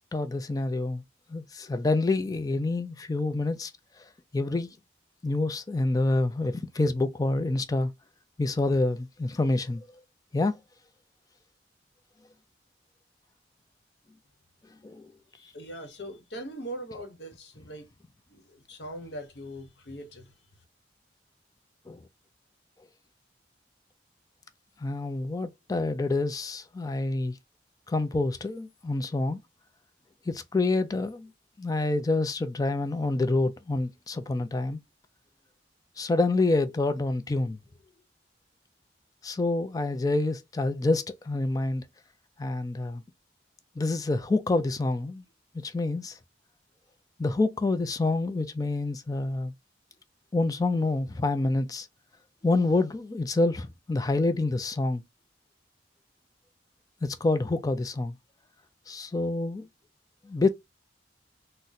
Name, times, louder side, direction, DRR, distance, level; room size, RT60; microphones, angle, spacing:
voice 1, 0.1-1.0 1.3-3.7 4.3-4.7 5.2-7.9 8.4-9.9 10.3-10.6 14.8-15.1 21.9-22.0 24.8-27.3 27.9-29.4 30.3-31.3 31.6-34.8 36.0-37.6 39.2-41.9 42.4-43.0 43.8-45.2 45.6-46.2 47.2-49.5 50.3-51.9 52.4-55.0 57.0-58.2 58.9-59.7 60.2-60.5, left 2 dB, 20° left, 0.3 m, -27 dB
voice 2, 15.4-17.9 18.3-20.3, right 1 dB, 70° left, 0.9 m, -41 dB
3.9 x 2.1 x 2.6 m
head